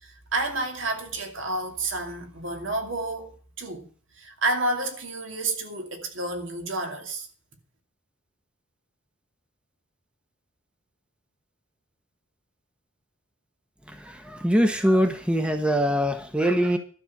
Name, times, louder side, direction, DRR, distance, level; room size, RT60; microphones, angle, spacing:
voice 1, 0.0-3.9 4.1-7.3, right 2 dB, 65° right, 2.5 m, -30 dB
voice 2, 13.9-16.8, equal, 5° right, 1.0 m, -23 dB
12.0 x 6.3 x 8.5 m
head